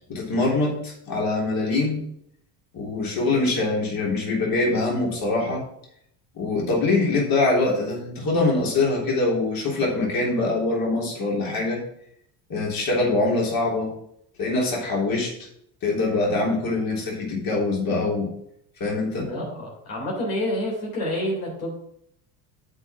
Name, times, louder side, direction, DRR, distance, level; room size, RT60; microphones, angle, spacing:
voice 1, 0.1-2.0 2.7-5.6 6.4-11.8 12.5-13.9 14.4-15.3 15.8-18.3 18.8-19.3, left 2 dB, 45° left, -3 dB, 3.5 m, -23 dB
voice 2, 19.2-21.7, left 1 dB, 80° left, -2 dB, 3.5 m, -28 dB
7.8 x 4.8 x 6.3 m, 0.72 s
hypercardioid pair, 65°, 47 cm